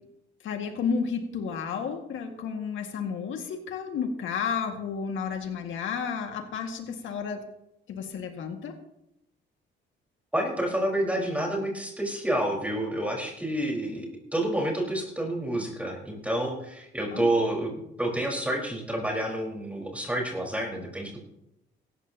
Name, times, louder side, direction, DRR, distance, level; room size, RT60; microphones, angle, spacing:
voice 1, 0.4-7.4 7.9-8.7 17.1-17.3, left 6 dB, 80° left, 4 dB, 2.0 m, -32 dB
voice 2, 10.3-14.1 14.3-17.7 18.0-21.2, right 1 dB, 5° right, 0 dB, 4.6 m, -29 dB
17.0 x 14.0 x 2.9 m, 0.82 s
cardioid pair, 90°, 20 cm